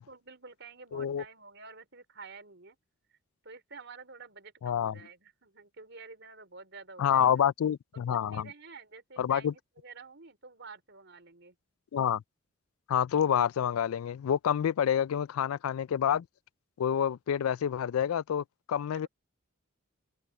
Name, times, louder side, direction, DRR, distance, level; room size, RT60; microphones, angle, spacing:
voice 1, 0.0-2.8 3.4-7.4 7.9-11.5 18.8-19.1, right 4 dB, 55° right, 5.0 m, -50 dB
voice 2, 0.9-1.2 4.6-4.9 7.0-8.5 9.2-9.5 11.9-12.2 12.9-16.3 16.8-19.1, left 9 dB, 85° left, 0.3 m, -28 dB
open air
head